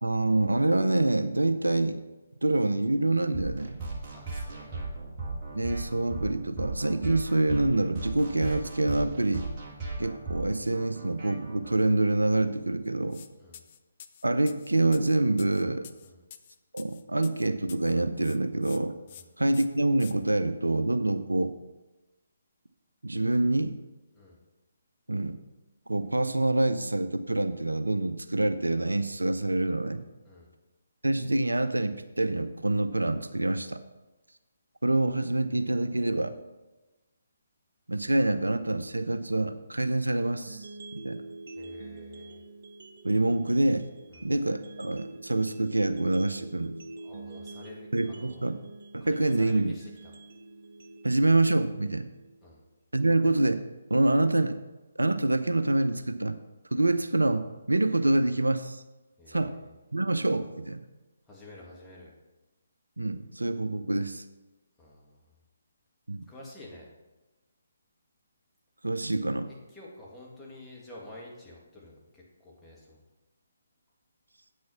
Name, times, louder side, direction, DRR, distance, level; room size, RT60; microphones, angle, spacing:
voice 1, 0.0-2.0 2.4-3.8 5.5-9.4 10.0-13.2 14.2-15.9 16.7-18.9 19.4-21.5 23.0-23.8 25.1-25.4 25.9-30.0 31.0-33.8 34.8-36.3 37.9-41.2 43.0-43.8 44.2-46.8 47.9-48.6 48.9-49.7 51.0-52.1 52.9-53.6 53.9-54.6 55.0-56.4 56.7-58.8 59.3-59.6 59.9-60.8 63.0-64.2 66.1-66.2 68.8-69.5, right 2 dB, 80° right, 11 dB, 0.5 m, -26 dB
sound 1, 3.3-11.7, right 3 dB, 25° right, 2.1 m, -37 dB
voice 2, 4.1-5.0 13.4-13.6 16.0-16.2 19.1-19.3 24.1-24.4 30.2-30.5 41.6-42.4 44.1-44.3 47.0-48.5 49.0-50.1 52.4-52.6 59.2-59.7 61.3-62.1 64.8-65.2 66.3-66.9 69.5-73.0, left 1 dB, 5° left, -6 dB, 2.1 m, -49 dB
sound 2, 13.1-13.3 13.5-17.9 18.2-18.8 19.1-19.2 19.5-20.1, left 9 dB, 35° left, 0.5 m, -48 dB
sound 3, 40.5-52.5, right 2 dB, 50° right, 0.9 m, -46 dB
8.3 x 6.3 x 5.7 m, 1.1 s
figure-of-eight pair, 140°, 0 cm